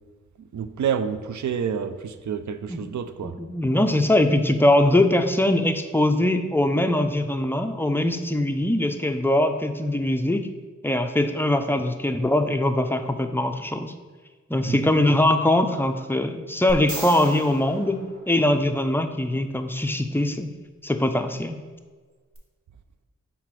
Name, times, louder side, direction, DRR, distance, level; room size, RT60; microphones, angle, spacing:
voice 1, 0.4-3.3 14.7-14.9, right 7 dB, 80° right, 11 dB, 0.5 m, -29 dB
voice 2, 3.2-10.5 10.8-13.9 14.5-20.5 20.8-21.6, left 1 dB, 10° left, 7 dB, 0.4 m, -22 dB
sound 1, 16.7-18.9 22.3-22.4, right 1 dB, 50° right, 1.6 m, -37 dB
5.8 x 3.8 x 4.6 m, 1.4 s
wide cardioid pair, 90°, 29 cm